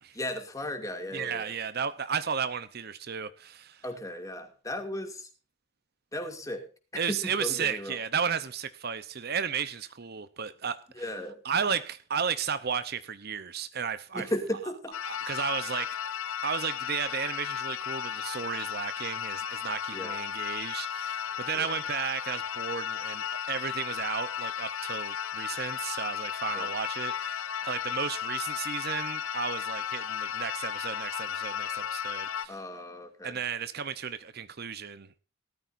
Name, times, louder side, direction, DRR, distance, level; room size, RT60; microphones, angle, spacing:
voice 1, 0.1-1.5 3.8-5.3 6.1-8.0 10.9-11.4 14.1-14.9 19.9-20.2 21.5-21.8 26.5-26.7 32.5-33.4, left 1 dB, 15° left, 2.4 m, -36 dB
voice 2, 1.1-3.8 7.0-10.8 11.4-14.3 15.1-16.0 16.4-32.5 33.2-35.2, right 6 dB, 50° right, 0.8 m, -34 dB
sound 1, 14.9-32.5, left 9 dB, 85° left, 0.9 m, -34 dB
18.5 x 13.5 x 2.6 m
head